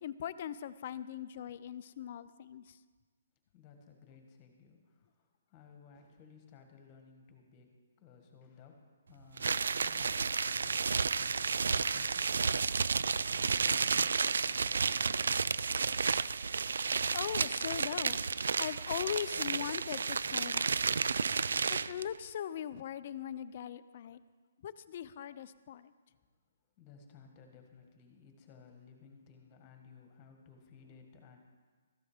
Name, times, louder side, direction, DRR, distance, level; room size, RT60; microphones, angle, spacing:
voice 1, 0.0-2.8 17.1-18.2 18.6-21.0 21.7-24.2 24.6-25.9, left 10 dB, 40° left, 14 dB, 0.5 m, -40 dB
voice 2, 3.5-7.7 8.0-13.1 13.3-15.7 26.8-31.4, left 5 dB, 25° left, 4 dB, 1.7 m, -58 dB
sound 1, 9.4-22.0, right 5 dB, 80° right, 0.3 m, -31 dB
13.5 x 10.5 x 5.1 m, 1.4 s
hypercardioid pair, 160°, 0 cm